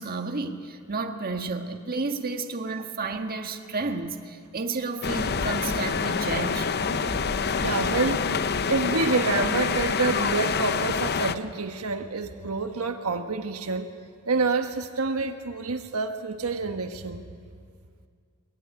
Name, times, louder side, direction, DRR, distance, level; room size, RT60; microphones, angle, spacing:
voice 1, 0.0-6.7, right 3 dB, 45° right, 4 dB, 1.6 m, -31 dB
sound 1, 5.0-11.3, left 5 dB, 50° left, 0.7 m, -26 dB
voice 2, 6.9-13.9 14.3-17.2, right 3 dB, 85° right, 6 dB, 1.3 m, -28 dB
23.5 x 19.5 x 9.6 m, 2.2 s
head